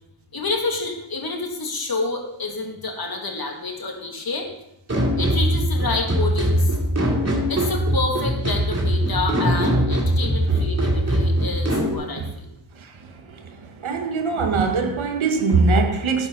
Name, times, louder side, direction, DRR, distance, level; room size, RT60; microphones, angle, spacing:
voice 1, 0.3-4.5 5.2-6.8 7.5-12.5, left 3 dB, 50° left, 1 dB, 2.3 m, -28 dB
sound 1, 4.9-11.9, equal, 35° right, 2.4 m, -21 dB
voice 2, 13.8-16.3, right 4 dB, 80° right, 5 dB, 1.5 m, -21 dB
11.0 x 10.0 x 4.0 m, 0.85 s
wide cardioid pair, 90°, 47 cm